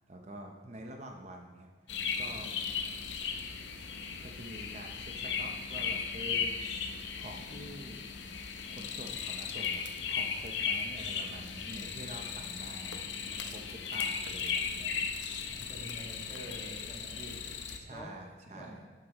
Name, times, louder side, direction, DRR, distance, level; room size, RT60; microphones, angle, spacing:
voice 1, 0.0-1.7 2.2-2.6 4.2-6.6 7.1-8.1 8.7-15.1 17.8-18.8, right 1 dB, 35° right, 2 dB, 0.7 m, -47 dB
sound 1, 1.9-17.8, left 6 dB, 70° left, 0.8 m, -36 dB
voice 2, 15.4-17.4 17.9-18.2 18.5-18.8, right 1 dB, 25° left, -3 dB, 1.9 m, -47 dB
11.5 x 7.6 x 3.0 m, 1.5 s
head